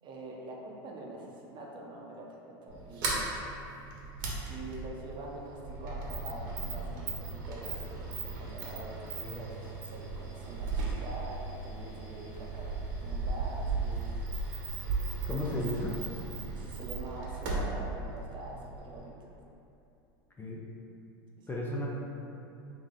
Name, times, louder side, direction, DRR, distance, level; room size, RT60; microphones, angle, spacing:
voice 1, 0.0-3.4 4.5-14.1 15.3-15.5 16.5-19.3 21.4-21.6, right 1 dB, 40° right, -1 dB, 0.7 m, -45 dB
Sliding door, 2.7-19.1, right 3 dB, 65° right, 1.0 m, -36 dB
voice 2, 15.3-16.0 20.4-20.6 21.5-21.9, left 1 dB, 15° left, -3 dB, 0.5 m, -34 dB
3.7 x 3.0 x 3.7 m, 2.8 s
hypercardioid pair, 105°, 13 cm